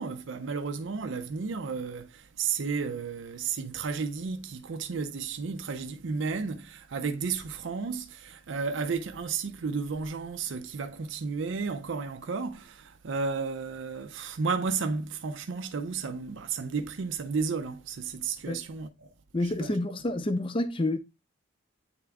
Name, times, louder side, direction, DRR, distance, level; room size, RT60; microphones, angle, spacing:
voice 1, 0.0-19.1 19.6-19.7, right 5 dB, 70° right, 0.5 m, -33 dB
voice 2, 19.3-21.0, left 1 dB, 25° left, 0.4 m, -28 dB
8.6 x 3.5 x 3.4 m
head